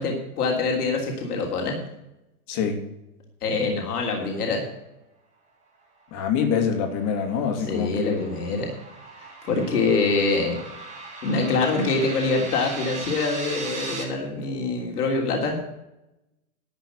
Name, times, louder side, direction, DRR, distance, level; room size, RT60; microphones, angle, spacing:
voice 1, 0.0-1.8 3.4-4.7 7.5-8.7 9.2-10.6 11.2-15.6, left 3 dB, 85° left, 0 dB, 3.3 m, -25 dB
voice 2, 2.5-2.8 6.1-8.2, left 7 dB, 45° left, 5 dB, 2.6 m, -25 dB
sound 1, 6.3-14.0, right 3 dB, 15° right, 3.1 m, -38 dB
12.5 x 6.2 x 8.2 m, 0.92 s
hypercardioid pair, 130°, 45 cm